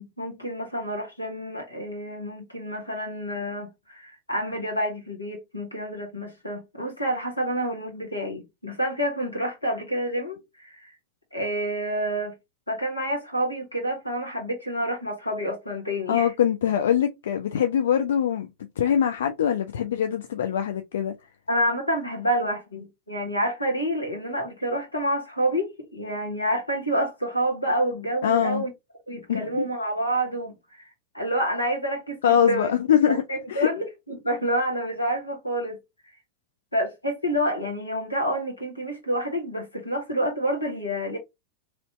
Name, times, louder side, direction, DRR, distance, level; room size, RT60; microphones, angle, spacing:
voice 1, 0.0-11.0 11.3-12.3 12.7-16.3 21.5-28.7 29.1-30.9 31.1-32.7 33.1-35.8 36.7-41.2, equal, 85° left, 1.3 m, -28 dB
voice 2, 16.1-18.5 18.8-21.1 28.2-28.6 29.3-29.6 32.2-33.2 33.5-33.7, left 9 dB, 60° left, 0.4 m, -23 dB
3.1 x 2.7 x 2.9 m
figure-of-eight pair, 90°, 0 cm